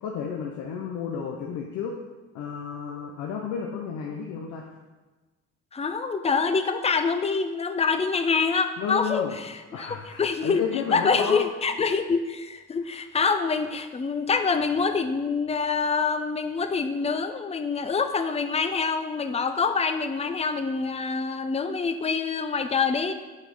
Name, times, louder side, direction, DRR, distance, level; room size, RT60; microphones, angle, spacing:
voice 1, 0.0-1.9 2.3-4.7 8.8-9.4 9.7-11.4, left 7 dB, 90° left, 0 dB, 0.8 m, -32 dB
voice 2, 5.7-10.6 10.9-23.1, left 5 dB, 20° left, 8 dB, 0.6 m, -26 dB
6.5 x 5.2 x 5.5 m, 1.2 s
cardioid pair, 90°, 30 cm